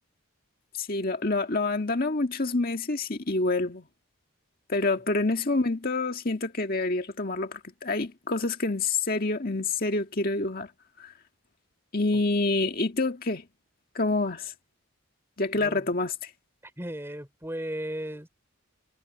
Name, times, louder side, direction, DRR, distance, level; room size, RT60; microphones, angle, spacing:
voice 1, 0.8-3.8 4.7-10.7 11.0-11.1 11.9-13.5 14.0-14.5 15.4-16.3, left 3 dB, 40° left, 1.8 m, -27 dB
voice 2, 16.6-18.3, right 1 dB, 10° right, 3.8 m, -36 dB
head